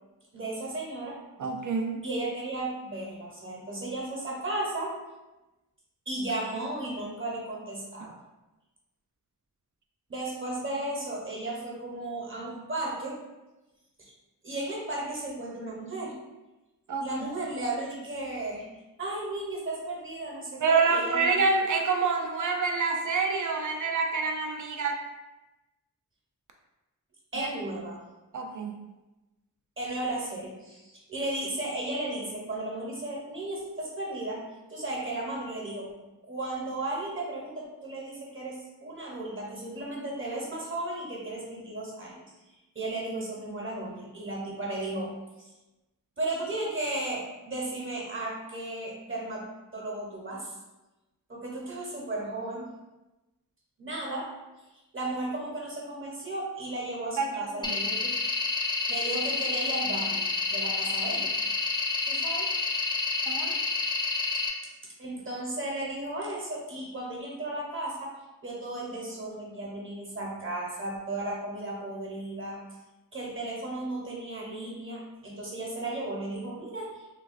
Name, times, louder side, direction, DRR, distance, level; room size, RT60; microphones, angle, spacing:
voice 1, 0.3-1.2 2.0-4.9 6.1-8.1 10.1-13.2 14.0-14.1 14.4-16.2 17.0-18.7 19.0-21.4 27.3-28.0 29.8-34.4 34.7-35.9 36.3-42.3 42.7-45.5 46.2-49.4 49.7-50.5 51.3-52.7 53.8-54.3 54.9-58.1 58.9-61.3 62.1-62.5 65.0-68.1 68.4-72.6 73.1-77.0, right 2 dB, 35° right, -3 dB, 0.9 m, -35 dB
voice 2, 1.4-2.0 16.9-17.0 20.6-24.9 27.4-27.5 28.3-28.9 57.2-57.7 63.3-63.5, right 4 dB, 60° right, 3 dB, 0.5 m, -27 dB
sound 1, 57.6-64.5, left 3 dB, 15° left, 0.4 m, -29 dB
3.1 x 2.3 x 2.5 m, 1.0 s
wide cardioid pair, 65°, 35 cm